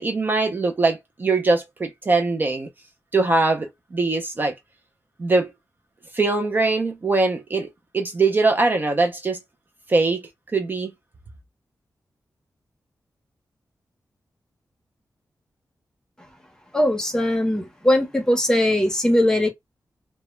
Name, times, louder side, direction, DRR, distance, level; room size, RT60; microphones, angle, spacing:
voice 1, 0.0-2.7 3.1-4.6 5.2-5.5 6.1-7.7 7.9-9.4 9.9-10.9, right 3 dB, 30° right, 0.4 m, -22 dB
voice 2, 16.7-19.5, left 1 dB, 10° left, 0.6 m, -20 dB
2.1 x 2.0 x 2.9 m
wide cardioid pair, 160°, 7 cm